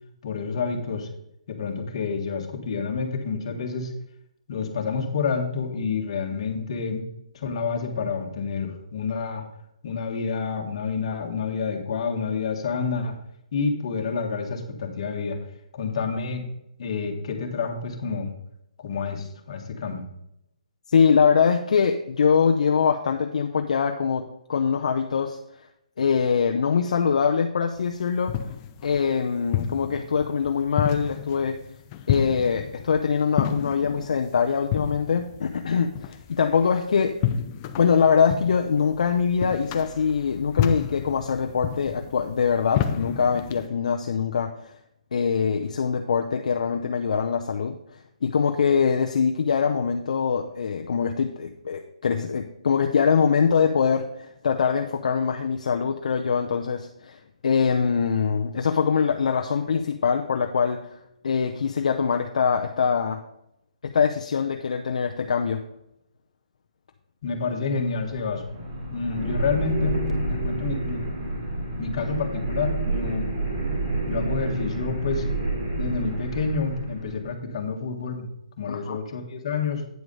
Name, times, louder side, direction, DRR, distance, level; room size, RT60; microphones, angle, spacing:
voice 1, 0.2-1.1 1.5-3.9 4.5-7.0 7.3-9.4 9.8-13.2 13.5-15.4 15.7-16.4 16.8-18.3 18.8-20.1 67.2-68.4 68.9-71.1 71.8-73.3 74.1-75.2 75.7-78.3 78.6-79.8, left 5 dB, 45° left, 3 dB, 1.6 m, -28 dB
voice 2, 20.9-25.4 26.0-28.4 28.8-31.6 32.1-37.2 37.8-44.5 45.1-47.8 48.2-60.9 61.2-63.2 63.8-65.6 78.7-79.0, left 6 dB, 65° left, 4 dB, 0.6 m, -23 dB
sound 1, 27.8-43.7, left 10 dB, 25° left, 0.4 m, -31 dB
sound 2, 67.7-77.2, right 2 dB, 45° right, 3.0 m, -29 dB
9.2 x 4.8 x 5.4 m, 0.80 s
hypercardioid pair, 160°, 4 cm